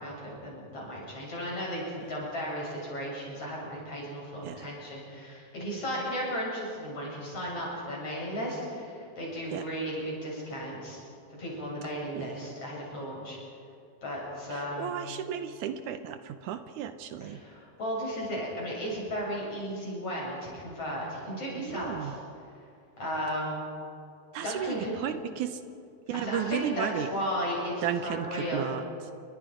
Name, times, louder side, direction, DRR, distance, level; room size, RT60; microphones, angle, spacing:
voice 1, 0.0-11.0 11.4-13.4 14.0-14.9 17.2-22.1 23.0-23.6 24.4-24.9 26.1-28.6, equal, 45° left, -4 dB, 8.5 m, -35 dB
voice 2, 12.1-12.5 14.5-17.4 21.5-22.1 24.3-25.6 26.1-27.1 27.8-29.1, right 9 dB, 75° right, 9 dB, 2.2 m, -34 dB
29.5 x 23.5 x 5.1 m, 2.5 s
omnidirectional pair, 3.8 m